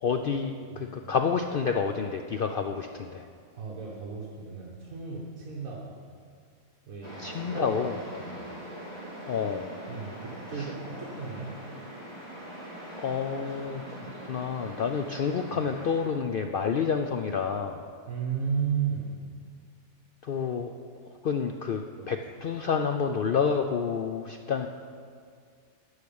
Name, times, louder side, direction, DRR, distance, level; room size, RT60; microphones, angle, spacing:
voice 1, 0.0-3.3 7.2-7.9 9.3-9.7 10.6-10.7 13.0-17.8 20.2-20.7 21.1-24.7, left 6 dB, 80° left, 5 dB, 0.5 m, -29 dB
voice 2, 0.7-1.1 3.5-5.9 6.9-7.8 8.1-8.4 9.9-11.6 18.1-19.2 21.9-22.1, right 6 dB, 75° right, -3 dB, 1.6 m, -34 dB
sound 1, 7.0-16.1, right 1 dB, 20° left, 2.2 m, -42 dB
13.0 x 4.9 x 8.6 m, 2.1 s
omnidirectional pair, 1.5 m